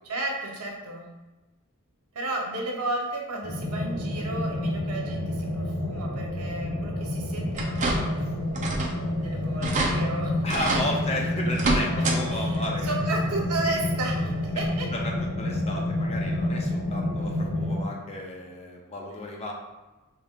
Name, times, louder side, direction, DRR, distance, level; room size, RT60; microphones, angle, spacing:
voice 1, 0.0-1.1 2.1-8.8 9.2-10.7 12.3-14.9, right 2 dB, 85° right, 0 dB, 0.8 m, -33 dB
sound 1, 3.4-17.8, left 1 dB, 75° left, 1.3 m, -29 dB
sound 2, 7.5-8.2 8.5-9.0 9.3-9.4 9.6-9.9 10.5-10.9 11.5-12.2 12.5-12.7 14.0-14.1 14.6-14.7, right 2 dB, 35° right, 0.6 m, -27 dB
voice 2, 10.4-13.0 14.9-19.5, left 1 dB, 30° left, 0 dB, 0.5 m, -33 dB
5.0 x 2.8 x 2.4 m, 1.1 s
head